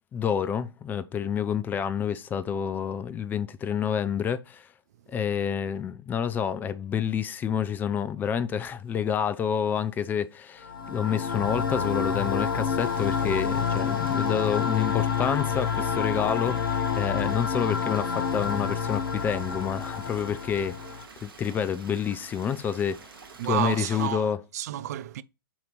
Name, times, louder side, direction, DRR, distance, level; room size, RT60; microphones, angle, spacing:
voice 1, 0.1-4.7 5.1-20.7 21.2-23.0 23.4-24.4, left 8 dB, 15° left, 0.5 m, -28 dB
sound 1, 10.6-21.0, left 6 dB, 65° left, 1.1 m, -28 dB
Stream, 12.8-24.1, right 5 dB, 65° right, 1.4 m, -48 dB
voice 2, 23.4-25.2, right 12 dB, 45° right, 0.4 m, -31 dB
8.5 x 2.9 x 5.1 m
figure-of-eight pair, 110°, 13 cm